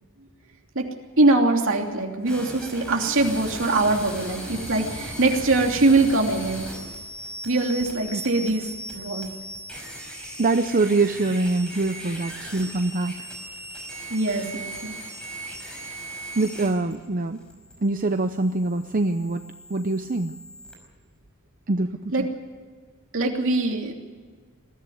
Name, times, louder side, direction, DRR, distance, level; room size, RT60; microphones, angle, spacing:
voice 1, 1.2-6.7 7.4-8.7 8.9-9.3 14.1-14.9 22.1-22.3 23.1-23.9, right 2 dB, 60° right, 2 dB, 3.0 m, -22 dB
sound 1, 2.3-20.7, right 1 dB, 5° left, 5.4 m, -38 dB
voice 2, 10.4-13.3 16.4-17.4 17.8-19.4 19.7-20.3 21.7-22.3, right 2 dB, 40° right, 8 dB, 0.7 m, -24 dB
21.5 x 14.5 x 9.4 m, 1.5 s
head